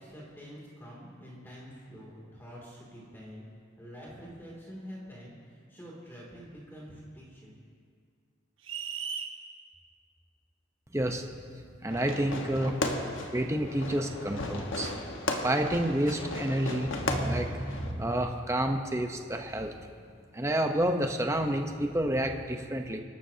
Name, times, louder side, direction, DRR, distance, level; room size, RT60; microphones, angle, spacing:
voice 1, 0.0-3.4 3.8-5.3 5.7-7.5, equal, 10° left, -5 dB, 2.7 m, -46 dB
sound 1, 8.6-9.4, right 6 dB, 80° right, 1.3 m, -36 dB
voice 2, 10.9-11.2 11.8-12.8 13.3-14.9 15.4-19.7 20.3-23.0, right 1 dB, 15° right, 4 dB, 0.9 m, -29 dB
Fireworks, 11.9-17.9, left 2 dB, 80° left, 1.4 m, -35 dB
27.0 x 12.0 x 2.8 m, 2.1 s
head